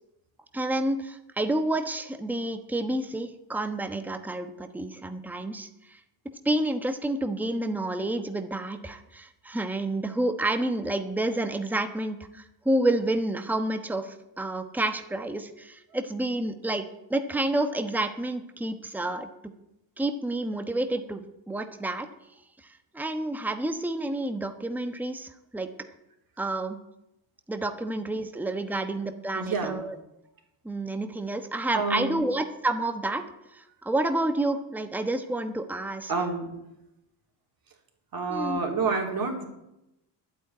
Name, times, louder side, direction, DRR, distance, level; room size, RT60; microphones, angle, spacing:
voice 1, 0.5-6.0 6.4-19.3 20.0-22.1 22.9-25.7 26.4-26.8 27.5-29.9 30.6-36.1 38.3-38.6, right 1 dB, 5° right, 7 dB, 1.1 m, -29 dB
voice 2, 29.3-29.9 31.7-32.2 36.1-36.5 38.1-39.4, right 4 dB, 45° right, 2 dB, 3.7 m, -28 dB
11.0 x 9.2 x 9.6 m, 0.90 s
cardioid pair, 100°, 49 cm